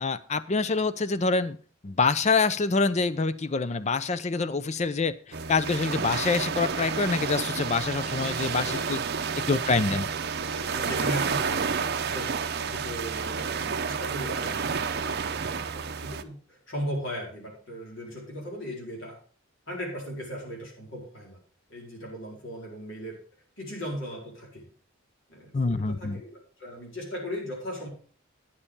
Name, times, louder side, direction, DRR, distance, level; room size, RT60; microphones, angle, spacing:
voice 1, 0.0-1.6 1.8-9.0 9.5-10.1 25.5-26.2, left 4 dB, 35° left, 14 dB, 0.5 m, -26 dB
sound 1, 5.3-16.2, right 5 dB, 50° right, 0.6 m, -30 dB
voice 2, 8.1-9.5 9.9-10.0 10.5-12.3 12.6-19.2 19.7-21.4 21.7-23.2 23.6-24.7 25.3-27.9, equal, 60° left, -1 dB, 4.3 m, -38 dB
10.0 x 6.8 x 5.4 m, 0.43 s
head